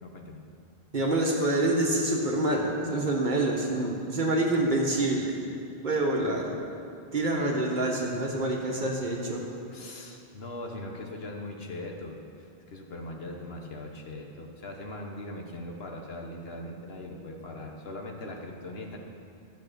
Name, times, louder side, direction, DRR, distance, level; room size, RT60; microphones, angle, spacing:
voice 1, 0.0-0.4 9.7-12.2 12.7-19.0, left 1 dB, 70° left, 1 dB, 1.4 m, -40 dB
voice 2, 0.9-5.4 5.8-6.6 7.1-9.4, right 2 dB, 45° right, -1 dB, 1.5 m, -26 dB
12.5 x 6.7 x 6.8 m, 2.5 s
omnidirectional pair, 1.1 m